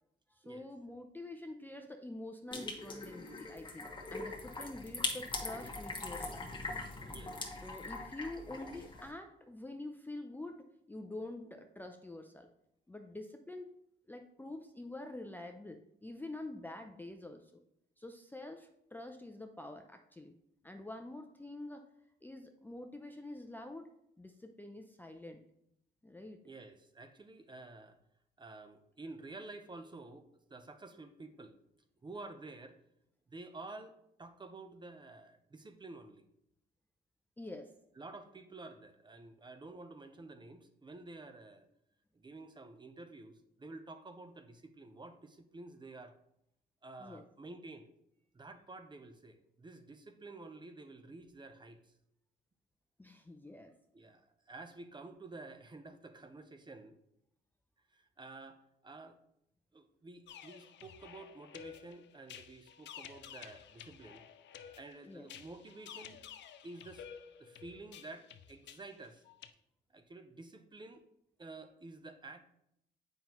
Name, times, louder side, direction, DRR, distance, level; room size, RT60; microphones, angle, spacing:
voice 1, 0.3-6.5 7.6-12.5 12.9-13.7 14.1-17.6 18.0-20.4 20.6-21.9 22.2-23.9 24.2-25.4 26.0-26.4 37.4-37.7 47.0-47.2 53.0-53.7 65.0-65.3, left 2 dB, 10° left, 5 dB, 0.5 m, -47 dB
sound 1, 2.5-9.1, left 3 dB, 25° left, 1.3 m, -41 dB
voice 2, 26.4-28.0 28.4-31.5 32.0-32.8 33.3-36.3 38.0-41.7 42.1-46.2 46.8-47.9 48.3-51.9 53.9-57.0 57.9-59.2 59.7-64.2 64.7-66.2 66.6-67.1 67.4-69.2 69.9-71.0 71.4-72.4, right 2 dB, 25° right, 8 dB, 0.7 m, -50 dB
sound 2, 60.3-69.5, left 8 dB, 65° left, 0.5 m, -52 dB
7.5 x 5.4 x 3.0 m, 0.78 s
cardioid pair, 90°, 20 cm